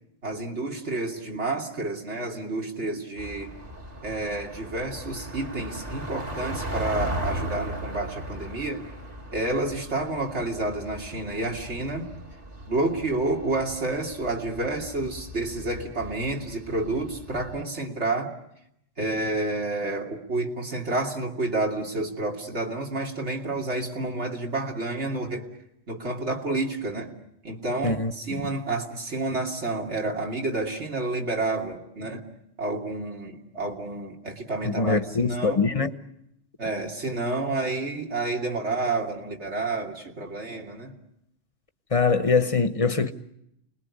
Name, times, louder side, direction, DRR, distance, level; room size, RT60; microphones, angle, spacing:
voice 1, 0.2-3.5 4.0-8.9 9.3-12.1 12.7-18.3 19.0-25.5 25.9-27.1 27.4-32.2 32.6-35.7 36.6-40.9, right 2 dB, 65° right, 3.0 m, -29 dB
sound 1, 3.2-17.6, equal, 35° right, 2.2 m, -37 dB
voice 2, 27.8-28.5 34.6-35.9 41.9-43.1, left 4 dB, 30° left, 1.1 m, -23 dB
29.0 x 21.0 x 9.7 m
omnidirectional pair, 1.3 m